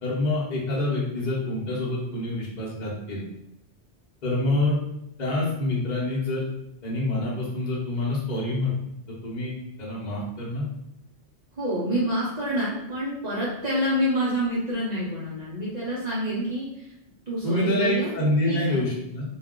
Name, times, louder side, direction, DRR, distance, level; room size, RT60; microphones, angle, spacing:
voice 1, 0.0-3.2 4.2-4.8 5.2-6.4 6.8-8.7 9.2-9.5 9.8-10.6 17.4-19.2, left 1 dB, 45° left, -5 dB, 0.9 m, -26 dB
voice 2, 11.6-16.9 17.3-18.1 18.5-18.8, equal, 45° right, -8 dB, 0.7 m, -27 dB
2.3 x 2.3 x 3.6 m, 0.83 s
omnidirectional pair, 1.1 m